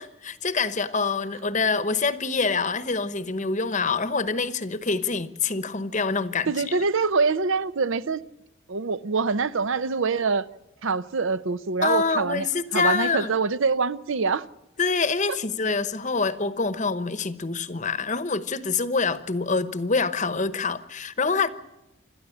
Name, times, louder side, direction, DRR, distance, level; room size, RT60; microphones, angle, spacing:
voice 1, 0.0-6.8 11.8-13.3 14.8-21.5, left 4 dB, 35° left, 1.0 m, -26 dB
voice 2, 6.5-8.2 8.7-10.5 10.8-12.5 12.7-14.4 15.3-15.4, right 4 dB, 65° right, 0.6 m, -25 dB
27.5 x 13.0 x 8.6 m
head